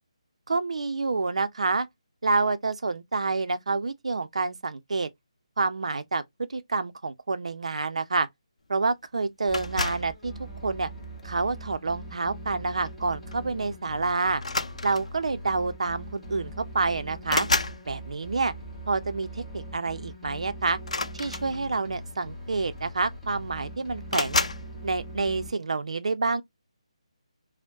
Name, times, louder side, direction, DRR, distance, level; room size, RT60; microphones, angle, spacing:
voice 1, 0.5-1.9 2.2-5.1 5.6-8.3 8.7-10.3 10.6-10.9 11.2-14.4 14.8-17.5 17.9-18.5 18.9-20.8 21.1-24.4 24.8-26.4, right 3 dB, 70° right, 0.5 m, -28 dB
sound 1, 9.5-10.2 11.0-11.4 12.9-13.0 13.3-13.5 14.4-15.2 16.2-16.3 16.6-17.8 20.8-21.9 22.8-22.9 23.1-23.6 24.1-24.7, left 3 dB, 80° left, 0.5 m, -30 dB
sound 2, 9.5-25.5, right 1 dB, 5° left, 1.1 m, -41 dB
4.4 x 2.1 x 2.6 m
figure-of-eight pair, 160°, 3 cm